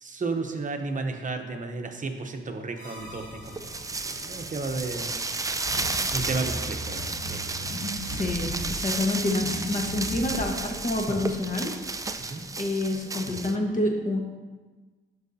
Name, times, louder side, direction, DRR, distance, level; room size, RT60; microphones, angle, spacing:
voice 1, 0.0-3.5 4.0-5.1 6.1-7.7 12.3-12.4, right 3 dB, 40° right, 4 dB, 0.9 m, -33 dB
sound 1, 2.8-4.4 6.2-7.8, equal, 90° left, 2.5 m, -43 dB
Car / Accelerating revving vroom, 3.0-12.1, equal, 55° left, 1.8 m, -39 dB
sound 2, 3.5-13.6, right 3 dB, 15° right, 0.4 m, -33 dB
voice 2, 8.1-11.7 12.6-14.2, left 2 dB, 40° left, 1 dB, 1.4 m, -28 dB
13.0 x 4.7 x 2.8 m, 1.3 s
cardioid pair, 85°, 21 cm